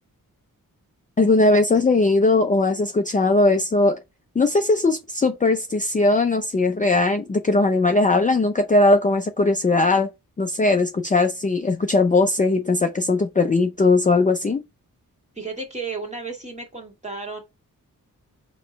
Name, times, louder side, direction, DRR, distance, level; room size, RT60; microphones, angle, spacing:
voice 1, 1.2-4.0 4.4-10.1 10.4-14.6, left 2 dB, 25° left, 0.5 m, -19 dB
voice 2, 15.4-17.4, right 4 dB, 20° right, 1.9 m, -33 dB
6.4 x 3.1 x 5.1 m
wide cardioid pair, 165°, 34 cm